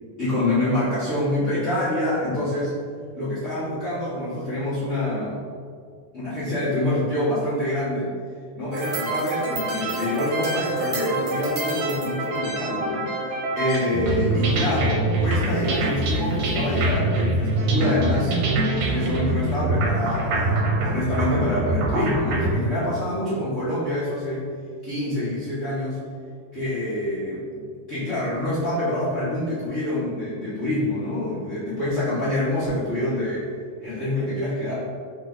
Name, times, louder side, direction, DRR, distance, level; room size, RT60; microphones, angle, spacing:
voice 1, 0.2-2.7 3.1-5.4 6.1-8.1 8.5-13.1 13.6-18.3 18.8-24.5 24.8-26.0 26.5-27.6 27.9-33.4 33.8-34.9, left 1 dB, 70° left, -14 dB, 0.7 m, -26 dB
sound 1, 8.7-22.5, right 2 dB, 80° right, 2.1 m, -25 dB
5.6 x 2.6 x 3.4 m, 2.1 s
omnidirectional pair, 3.8 m